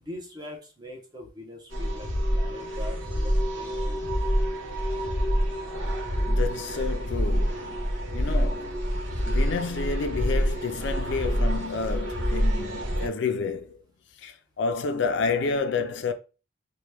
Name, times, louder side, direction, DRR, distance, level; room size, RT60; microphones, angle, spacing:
voice 1, 0.0-4.1, left 1 dB, 20° right, 0.8 m, -42 dB
sound 1, 1.7-13.1, equal, 70° right, 0.9 m, -27 dB
voice 2, 6.3-8.9 9.3-13.8 14.2-16.1, left 4 dB, 60° left, 0.4 m, -30 dB
2.9 x 2.2 x 3.2 m
head